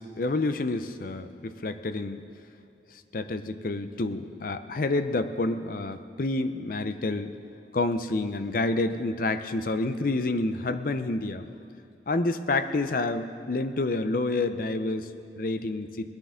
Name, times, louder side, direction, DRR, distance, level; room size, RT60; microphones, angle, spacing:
voice 1, 0.0-2.2 2.9-7.4 7.7-11.5 12.1-16.1, left 2 dB, 50° left, 10 dB, 0.6 m, -29 dB
19.5 x 13.5 x 3.8 m, 2.5 s
head